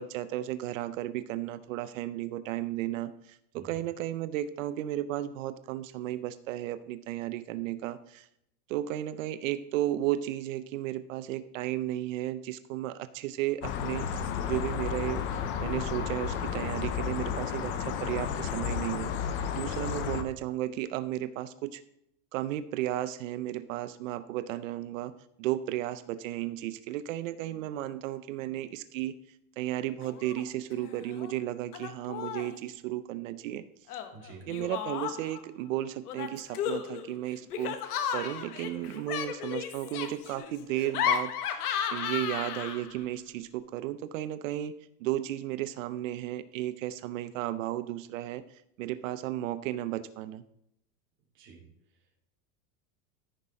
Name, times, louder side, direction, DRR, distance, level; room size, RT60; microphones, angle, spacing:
voice 1, 0.0-8.3 8.7-19.1 19.5-21.8 22.3-25.1 25.4-29.2 29.6-33.6 34.5-37.8 38.1-41.6 41.9-50.4, right 13 dB, 60° right, 13 dB, 0.6 m, -34 dB
voice 2, 3.5-3.9 19.7-19.9 34.1-34.5 51.3-51.6, right 4 dB, 25° right, -2 dB, 2.8 m, -49 dB
sound 1, 13.6-20.2, left 7 dB, 25° left, 0.6 m, -32 dB
Laughter, 30.0-30.4 30.7-31.3 31.7-32.6 33.9-35.4 36.1-43.0, left 8 dB, 80° left, 1.5 m, -34 dB
13.5 x 5.7 x 5.0 m, 0.77 s
supercardioid pair, 160°, 45 cm